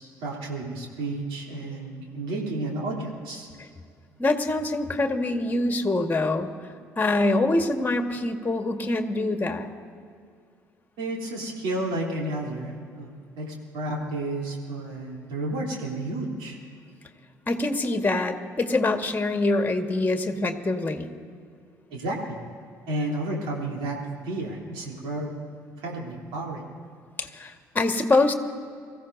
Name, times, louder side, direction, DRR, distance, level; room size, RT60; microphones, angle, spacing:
voice 1, 0.0-3.5 11.0-13.1 13.4-16.6 21.9-22.4 22.9-24.0 24.2-25.3 25.8-26.6, right 2 dB, 70° right, -1 dB, 3.3 m, -31 dB
voice 2, 4.2-6.5 7.0-9.7 17.5-21.1 27.2-28.3, left 2 dB, 20° left, 5 dB, 1.6 m, -24 dB
24.5 x 15.0 x 2.7 m, 2.2 s
hypercardioid pair, 50°, 9 cm